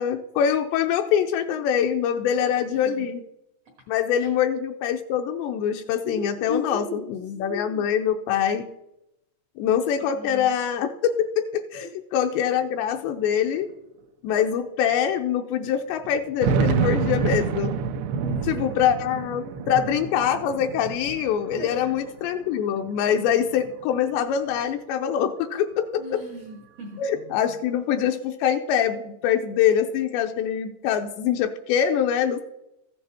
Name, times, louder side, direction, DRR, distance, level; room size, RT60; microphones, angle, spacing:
voice 1, 0.0-3.2 3.9-8.7 9.6-13.7 14.2-17.8 18.4-26.2 27.0-32.4, left 9 dB, 85° left, 4 dB, 2.8 m, -24 dB
voice 2, 6.0-7.1 10.1-10.5 18.1-18.9 19.2-19.7 21.5-21.8 26.0-27.0, left 1 dB, 70° right, 2 dB, 1.4 m, -36 dB
sound 1, 12.5-12.6 12.8-12.9 13.7-13.8 14.3-14.4 16.1-22.4 22.9-23.8, right 6 dB, 85° right, 2.9 m, -28 dB
14.5 x 9.3 x 4.3 m, 0.88 s
omnidirectional pair, 5.0 m